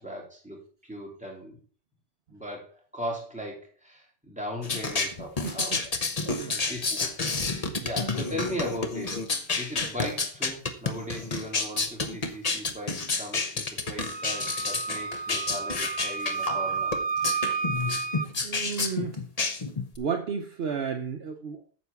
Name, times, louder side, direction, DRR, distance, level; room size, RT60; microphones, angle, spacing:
voice 1, 0.0-1.6 2.3-5.9 6.7-9.2 9.5-17.0 21.5-21.6, equal, 5° right, -2 dB, 3.1 m, -38 dB
sound 1, 4.6-20.0, left 4 dB, 35° left, 1.0 m, -30 dB
voice 2, 6.2-6.6 17.3-17.4 18.4-19.2 20.0-21.6, right 6 dB, 60° right, 5 dB, 1.0 m, -32 dB
Wind instrument woodwind instrument, 14.0-18.3, right 5 dB, 45° right, 0.3 m, -31 dB
9.6 x 4.5 x 7.0 m, 0.42 s
omnidirectional pair, 1.2 m